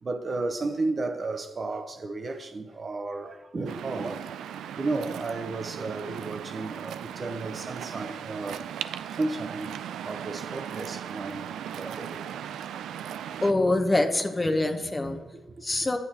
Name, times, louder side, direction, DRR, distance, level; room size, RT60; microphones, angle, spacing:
voice 1, 0.0-4.5 4.8-8.7 9.1-12.3 15.3-15.4, right 3 dB, 40° right, 0.9 m, -33 dB
Waves surf, 3.7-13.5, right 9 dB, 75° right, 0.3 m, -37 dB
voice 2, 13.4-15.2 15.6-16.0, left 2 dB, 20° left, 0.8 m, -24 dB
9.3 x 8.3 x 2.9 m
supercardioid pair, 55°, 0 cm